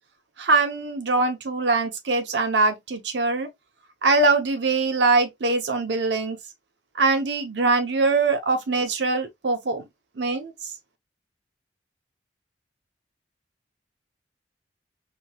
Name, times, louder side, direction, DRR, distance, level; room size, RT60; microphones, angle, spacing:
voice 1, 0.4-3.5 4.0-6.4 7.0-9.8 10.2-10.5, right 3 dB, 75° right, 0.7 m, -22 dB
2.9 x 2.8 x 2.2 m
head